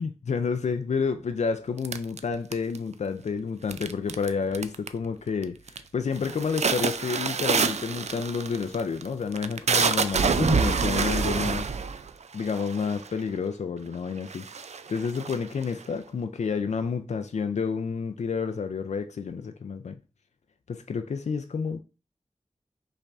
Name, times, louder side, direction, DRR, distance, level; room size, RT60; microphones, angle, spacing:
voice 1, 0.0-11.7 12.3-14.5 14.9-20.0 20.7-21.8, left 5 dB, 85° left, 0.4 m, -30 dB
sound 1, 1.8-2.9 3.7-4.3 4.5-5.1 5.4-5.8 6.2-13.2 13.9-14.0 14.3-15.9, right 5 dB, 75° right, 0.4 m, -27 dB
5.4 x 2.6 x 3.4 m
wide cardioid pair, 45°, 11 cm